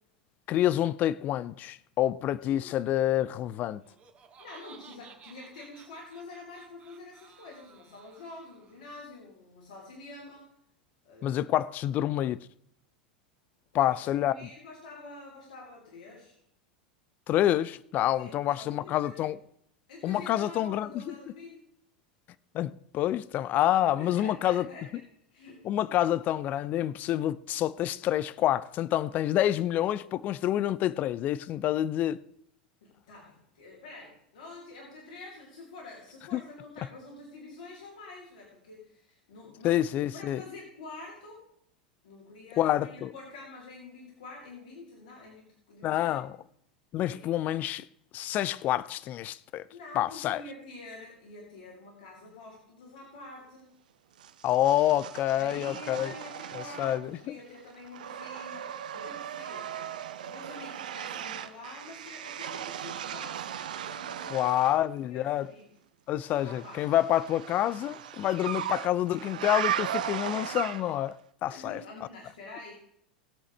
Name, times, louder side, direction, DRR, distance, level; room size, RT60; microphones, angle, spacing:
voice 1, 0.5-3.8 11.2-12.5 13.7-14.5 17.3-19.4 20.0-21.1 22.5-24.7 25.6-32.2 36.3-36.4 39.6-40.4 42.6-43.1 45.8-46.4 46.9-47.9 48.1-49.7 50.0-50.4 54.4-56.1 56.5-57.4 64.3-65.5 66.1-71.8, left 12 dB, 40° left, 0.5 m, -28 dB
Laughter, 3.7-8.9, right 6 dB, 30° right, 2.1 m, -56 dB
voice 2, 4.4-10.5 11.0-11.4 13.7-16.4 18.2-19.3 19.9-21.6 24.0-25.0 25.3-25.6 32.8-39.8 40.1-41.4 42.0-46.2 47.0-47.3 49.7-53.7 55.4-59.9 60.2-64.5 65.1-65.7 66.4-66.9 71.5-72.7, left 2 dB, 65° left, 4.6 m, -47 dB
sound 1, 54.2-57.3 57.5-64.8 66.4-71.1, right 10 dB, 70° right, 0.8 m, -37 dB
20.0 x 8.3 x 3.3 m
figure-of-eight pair, 85°, 5 cm